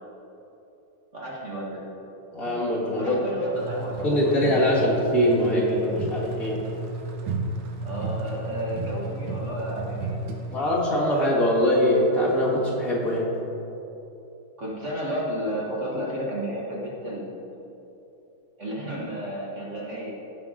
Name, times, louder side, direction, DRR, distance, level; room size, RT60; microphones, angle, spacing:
voice 1, 1.1-1.8 3.0-4.5 7.8-10.2 14.6-17.3 18.6-20.1, equal, 40° right, -5 dB, 1.6 m, -32 dB
voice 2, 2.3-3.2 4.0-6.6 10.5-13.3, equal, 45° left, -6 dB, 2.3 m, -22 dB
sound 1, 3.5-10.6, right 2 dB, 75° right, 1.8 m, -33 dB
17.0 x 5.8 x 3.8 m, 3.0 s
omnidirectional pair, 2.2 m